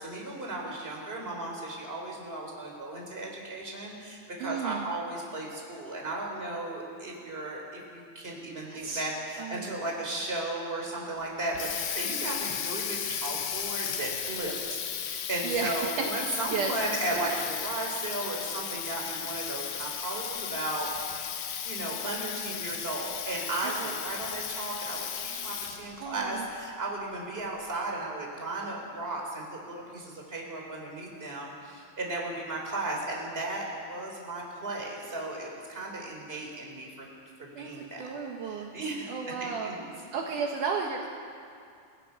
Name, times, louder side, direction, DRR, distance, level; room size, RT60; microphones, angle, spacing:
voice 1, 0.0-37.1 37.4-38.0 38.4-39.1 39.4-39.7, right 2 dB, 15° right, -1 dB, 3.3 m, -35 dB
voice 2, 4.4-4.9 8.6-9.0 9.4-9.7 15.4-16.0 16.5-16.8 17.3-17.5 23.6-23.9 26.0-26.5 37.6-38.7 39.1-39.7 40.1-41.1, right 6 dB, 75° right, 1 dB, 1.8 m, -33 dB
Water tap faucet, 11.3-26.0, left 8 dB, 65° left, 2.9 m, -35 dB
30.0 x 16.0 x 5.9 m, 2.4 s
omnidirectional pair, 5.4 m